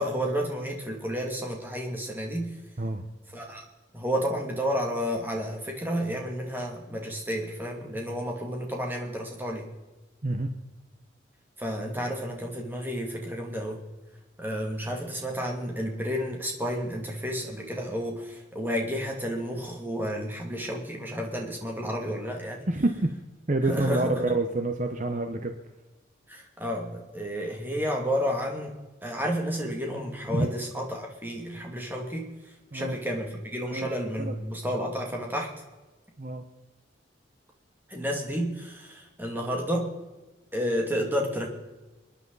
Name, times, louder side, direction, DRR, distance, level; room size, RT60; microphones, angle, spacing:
voice 1, 0.0-2.5 3.3-3.6 3.9-9.7 11.6-13.8 14.4-22.7 23.6-24.2 26.3-28.7 29.0-32.3 32.7-35.5 37.9-39.9 40.5-41.5, equal, 10° right, 1 dB, 2.4 m, -31 dB
voice 2, 22.7-23.1 23.5-25.5 30.3-30.5 32.7-33.0 33.7-33.9 34.3-34.4 36.2-36.4, right 2 dB, 40° right, 6 dB, 0.9 m, -27 dB
29.5 x 10.0 x 4.0 m, 1.2 s
head